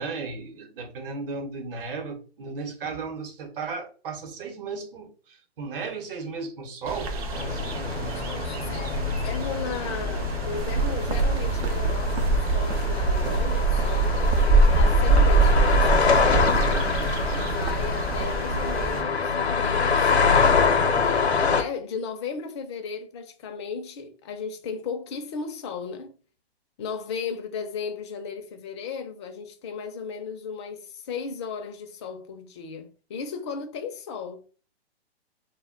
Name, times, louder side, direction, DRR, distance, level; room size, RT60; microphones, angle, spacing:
voice 1, 0.0-7.1, right 4 dB, 55° right, 0.9 m, -35 dB
sound 1, 6.9-19.0, right 2 dB, 35° right, 0.5 m, -26 dB
sound 2, 7.3-21.6, left 5 dB, 90° left, 0.7 m, -25 dB
voice 2, 8.1-16.6 17.3-26.1 26.8-34.4, left 5 dB, 25° left, 0.4 m, -36 dB
sound 3, 10.6-18.3, right 4 dB, 80° right, 0.7 m, -26 dB
2.1 x 2.1 x 3.6 m
hypercardioid pair, 135°, 32 cm